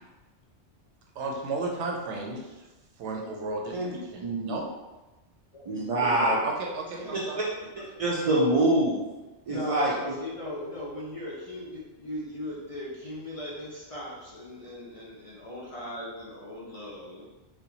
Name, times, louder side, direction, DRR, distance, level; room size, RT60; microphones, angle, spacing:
voice 1, 1.2-2.6 3.0-4.7 6.4-7.4, right 3 dB, 80° right, 0 dB, 0.9 m, -34 dB
voice 2, 4.2-4.6 5.7-6.4 7.4-7.5 8.0-9.0 9.5-9.9, right 1 dB, 60° right, -5 dB, 0.3 m, -24 dB
voice 3, 5.9-6.3 7.0-7.2 9.5-17.2, left 1 dB, 40° left, -6 dB, 0.6 m, -38 dB
4.3 x 2.2 x 2.7 m, 1.1 s
omnidirectional pair, 1.2 m